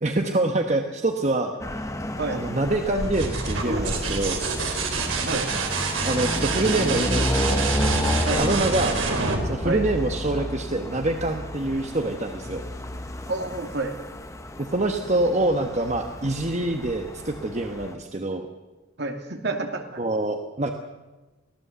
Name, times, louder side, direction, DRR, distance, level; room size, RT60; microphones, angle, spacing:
voice 1, 0.0-1.5 2.3-4.4 6.0-9.0 9.4-12.6 14.6-18.5 20.0-20.7, right 2 dB, 35° right, 4 dB, 1.2 m, -26 dB
sound 1, 1.6-17.9, left 1 dB, 15° left, 1.1 m, -31 dB
sound 2, 3.0-10.6 12.4-12.9, right 4 dB, 70° right, 3.7 m, -27 dB
voice 2, 13.3-13.9 19.0-20.0, right 3 dB, 55° right, 4 dB, 2.6 m, -29 dB
24.5 x 16.0 x 8.2 m, 1.2 s
head